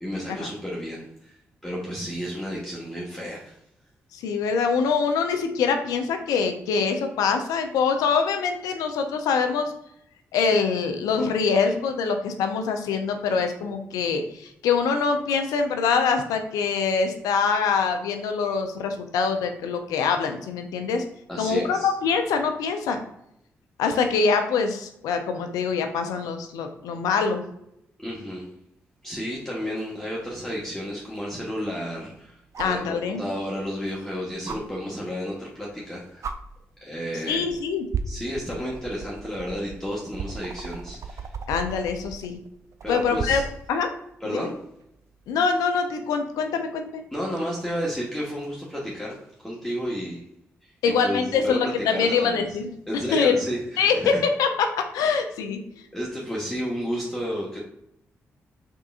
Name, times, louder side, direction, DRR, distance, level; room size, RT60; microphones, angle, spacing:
voice 1, 0.0-1.3 1.6-3.5 21.3-21.9 28.0-28.5 29.0-36.3 36.8-37.4 38.1-41.3 42.8-43.5 44.2-44.5 47.1-50.2 51.0-52.6 52.9-54.2 55.9-57.6, equal, 5° left, -6 dB, 1.2 m, -32 dB
voice 2, 4.1-9.7 10.3-21.0 21.4-23.0 23.8-27.4 32.6-33.2 37.3-37.9 41.5-42.4 42.9-43.4 43.7-43.9 44.3-44.5 45.3-47.0 50.8-52.7 53.1-53.4 53.8-54.1 54.4-54.7 54.9-55.6, left 5 dB, 85° left, 6 dB, 0.5 m, -24 dB
sound 1, 30.3-30.4 32.5-32.9 34.5-34.6 35.7-35.8 36.2-36.4 37.3-37.6 37.9-43.6 45.2-45.3, right 6 dB, 60° right, 0.4 m, -35 dB
3.7 x 3.7 x 2.4 m, 0.77 s
hypercardioid pair, 45°, 6 cm